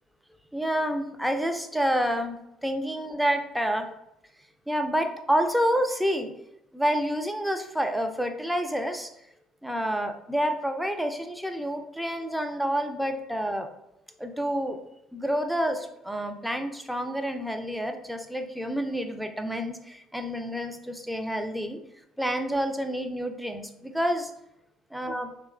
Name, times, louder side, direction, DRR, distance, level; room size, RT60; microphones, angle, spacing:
voice 1, 0.5-3.9 4.7-6.3 6.7-9.1 9.6-13.7 14.2-14.8 15.1-21.8 22.2-24.3 24.9-25.3, equal, ahead, 6 dB, 0.3 m, -28 dB
2.9 x 2.1 x 2.2 m, 0.82 s
figure-of-eight pair, 55°, 0 cm